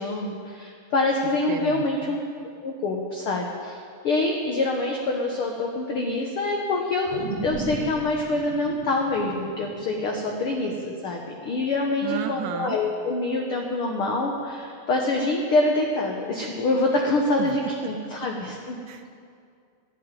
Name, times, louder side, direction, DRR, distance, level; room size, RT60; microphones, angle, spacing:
voice 1, 0.0-2.2 2.6-7.2 7.4-18.8, left 2 dB, 55° left, 1 dB, 1.6 m, -26 dB
voice 2, 1.5-2.2 12.0-12.8 17.4-17.6 18.9-19.1, right 10 dB, 85° right, 7 dB, 2.4 m, -33 dB
sound 1, 7.1-11.6 12.0-12.1, right 3 dB, 60° right, 2.7 m, -37 dB
13.0 x 11.0 x 9.1 m, 2.3 s
omnidirectional pair, 3.7 m